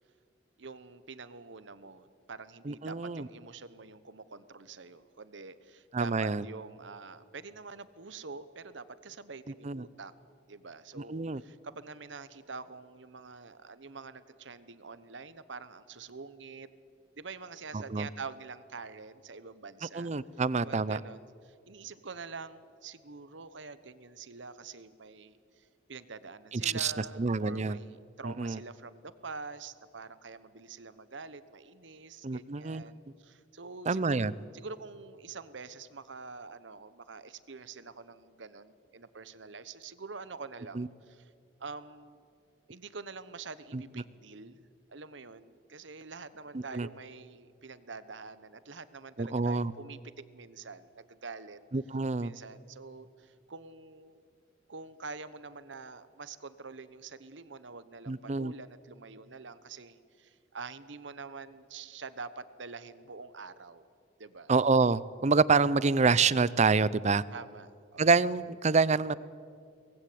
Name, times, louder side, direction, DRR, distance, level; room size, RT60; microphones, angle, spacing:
voice 1, 0.6-10.1 10.5-16.7 17.2-20.1 20.6-34.2 34.5-41.3 41.6-42.2 42.7-44.6 44.9-51.6 52.2-54.2 54.7-63.9 64.2-64.5 67.3-68.1, right 4 dB, 70° right, 14 dB, 1.1 m, -46 dB
voice 2, 2.7-3.3 5.9-6.4 9.6-9.9 11.0-11.4 17.7-18.1 19.9-21.0 26.5-27.8 28.2-28.6 32.2-32.8 33.9-34.3 40.7-40.9 43.7-43.8 46.5-46.9 49.2-49.7 51.7-52.3 58.1-58.5 64.5-67.2 68.0-69.1, right 4 dB, 40° right, 19 dB, 0.6 m, -27 dB
24.0 x 19.5 x 8.6 m, 2.3 s
head